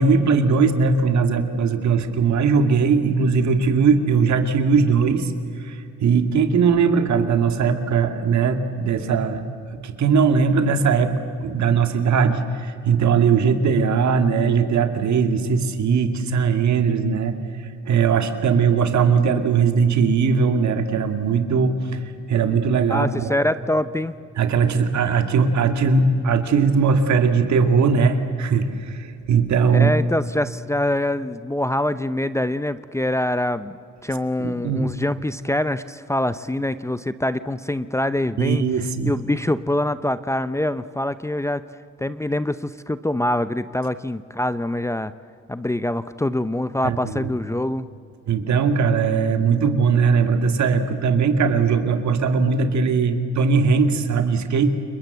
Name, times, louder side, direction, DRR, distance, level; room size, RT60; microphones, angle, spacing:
voice 1, 0.0-5.3 5.6-9.4 9.8-17.3 17.8-22.0 22.3-23.3 24.4-29.9 34.4-34.9 38.4-39.1 46.8-47.3 48.3-54.7, right 5 dB, 65° right, 7 dB, 2.2 m, -19 dB
voice 2, 22.9-24.1 29.7-33.8 34.0-38.6 39.0-41.6 42.0-45.1 45.5-47.9, left 1 dB, 10° left, 14 dB, 0.6 m, -24 dB
30.0 x 20.5 x 7.9 m, 2.5 s
cardioid pair, 90°, 30 cm